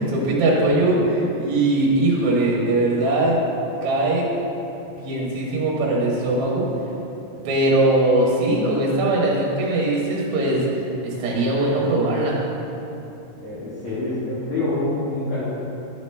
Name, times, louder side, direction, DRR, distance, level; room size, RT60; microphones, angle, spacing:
voice 1, 0.0-3.4 3.8-4.3 4.9-6.7 7.4-10.6 11.0-12.4, right 2 dB, 65° right, -4 dB, 2.2 m, -20 dB
voice 2, 13.4-15.4, left 2 dB, 50° left, -11 dB, 1.8 m, -26 dB
10.5 x 5.0 x 3.3 m, 2.8 s
omnidirectional pair, 4.0 m